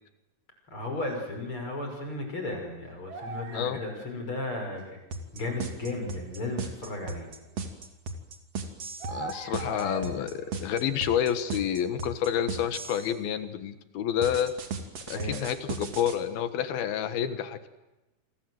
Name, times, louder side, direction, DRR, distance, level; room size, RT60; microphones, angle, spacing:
voice 1, 0.7-5.0 5.3-7.3 10.6-10.8 15.1-15.4, left 2 dB, 30° left, 3 dB, 6.4 m, -35 dB
sound 1, 2.8-4.1 5.2-5.3 7.4-7.7 9.0-10.1 10.4-11.1 11.4-11.7, right 3 dB, 80° right, 6.8 m, -40 dB
sound 2, 5.1-13.1 14.2-16.2, right 4 dB, 40° right, 3.3 m, -36 dB
voice 2, 9.1-14.5 15.1-17.7, left 9 dB, 70° left, 10 dB, 3.3 m, -29 dB
29.0 x 25.0 x 7.9 m, 1.0 s
omnidirectional pair, 4.7 m